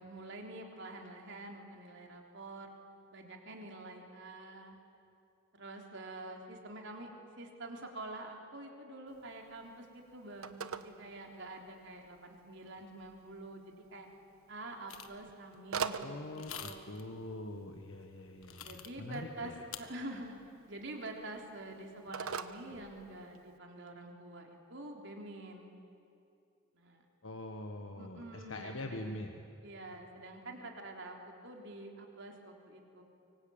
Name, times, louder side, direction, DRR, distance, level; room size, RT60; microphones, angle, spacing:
voice 1, 0.0-2.7 3.1-4.8 5.5-7.1 7.3-14.1 14.5-17.0 18.6-20.3 20.7-25.7 26.7-27.0 28.0-29.1 29.6-33.0, right 2 dB, 60° right, 2 dB, 3.7 m, -47 dB
Telephone, 9.1-23.6, right 6 dB, 85° right, 1.1 m, -46 dB
sound 1, 14.9-15.2 16.3-17.0 18.4-19.2 19.7-19.8, left 9 dB, 80° left, 1.6 m, -46 dB
voice 2, 16.0-19.6 27.2-29.3, left 1 dB, 65° left, 3 dB, 1.4 m, -44 dB
25.0 x 24.5 x 8.9 m, 2.6 s
head